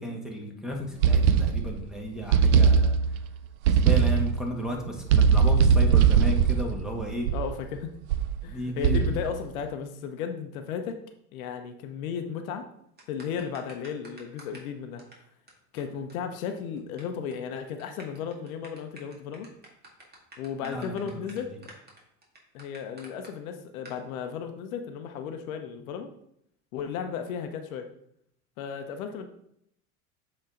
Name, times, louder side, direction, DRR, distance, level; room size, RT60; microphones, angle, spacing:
voice 1, 0.0-3.0 3.7-7.3 8.5-9.0 20.6-21.2, equal, ahead, 1 dB, 1.6 m, -34 dB
sound 1, 1.0-1.9 2.3-3.3 3.6-4.4 5.1-7.6 8.1-8.4 8.8-9.4, right 6 dB, 75° right, 0.6 m, -20 dB
voice 2, 7.3-7.9 8.4-11.0 11.3-12.7 13.1-15.0 15.7-19.5 20.4-21.5 22.5-26.1 26.7-27.9 28.6-29.3, left 7 dB, 70° left, 6 dB, 0.9 m, -35 dB
sound 2, 13.0-14.7 15.0-15.1 15.5-15.6 15.8-15.9 16.1-16.2 16.4-17.0 17.3-17.5 17.8-23.3 23.8-24.0, right 2 dB, 20° right, 2.3 m, -49 dB
7.6 x 4.4 x 3.8 m, 0.74 s
hypercardioid pair, 85°, 43 cm